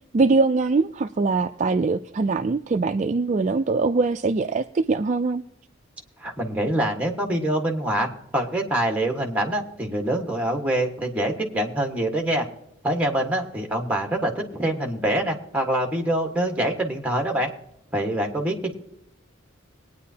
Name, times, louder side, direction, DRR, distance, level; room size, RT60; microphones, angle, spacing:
voice 1, 0.1-5.4, right 3 dB, 35° right, 8 dB, 0.3 m, -22 dB
voice 2, 6.2-8.1 8.3-12.4 12.8-17.5 17.9-18.7, right 1 dB, 5° right, 2 dB, 1.4 m, -25 dB
21.5 x 9.4 x 2.8 m, 0.79 s
head